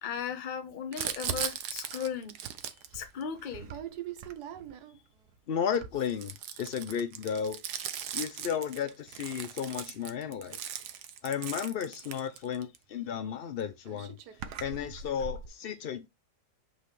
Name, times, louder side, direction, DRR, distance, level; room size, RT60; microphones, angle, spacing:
voice 1, 0.0-2.3 2.9-3.7, left 7 dB, 35° left, 0.9 m, -36 dB
Crumpling crinkling, 0.9-5.0 5.7-12.8 13.6-13.7 13.9-15.5, right 9 dB, 75° right, 1.3 m, -39 dB
voice 2, 5.5-7.6 8.1-10.6 11.2-14.2 14.6-16.1, left 8 dB, 70° left, 0.5 m, -33 dB
8.0 x 4.2 x 3.2 m
omnidirectional pair, 1.8 m